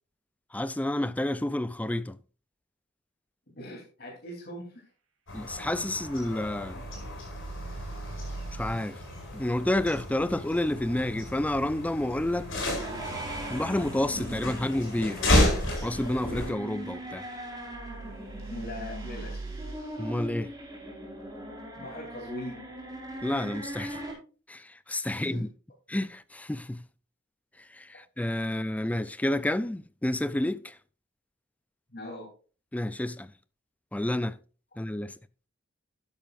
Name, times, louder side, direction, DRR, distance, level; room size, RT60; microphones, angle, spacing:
voice 1, 0.5-2.2 5.3-6.8 8.5-9.0 9.3-12.5 13.5-15.2 15.8-17.3 20.0-20.5 23.2-24.0 24.5-25.5 25.9-26.8 27.7-30.8 32.7-33.3 33.9-34.4 34.8-35.1, left 1 dB, 5° left, 0.4 m, -30 dB
voice 2, 3.5-4.9 18.5-19.6 21.7-22.7 25.1-25.5 31.9-32.3, left 1 dB, 50° left, 3.2 m, -41 dB
sound 1, 5.3-16.5, left 1 dB, 70° left, 5.7 m, -32 dB
sound 2, 6.7-8.7 12.2-14.3 17.7-19.8, right 3 dB, 75° right, 2.6 m, -42 dB
sound 3, 12.3-24.1, right 1 dB, 20° right, 4.3 m, -40 dB
12.0 x 10.5 x 2.5 m
head